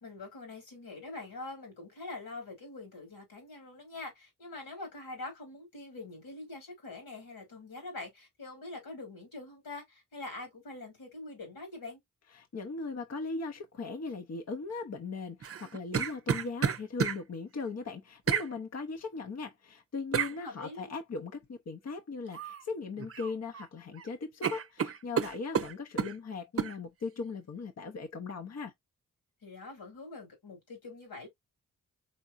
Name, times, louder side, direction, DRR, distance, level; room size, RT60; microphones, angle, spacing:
voice 1, 0.0-12.0 20.3-21.0 29.4-31.3, left 2 dB, 85° left, 3.2 m, -44 dB
voice 2, 12.3-28.7, left 4 dB, 45° left, 0.9 m, -39 dB
sound 1, 15.4-17.2 18.3-18.5 20.1-20.3 22.3-22.6 23.0-23.7 24.0-24.1 24.4-26.1 26.6-26.7, right 7 dB, 40° right, 0.6 m, -31 dB
4.4 x 3.5 x 2.5 m
supercardioid pair, 40°, 35 cm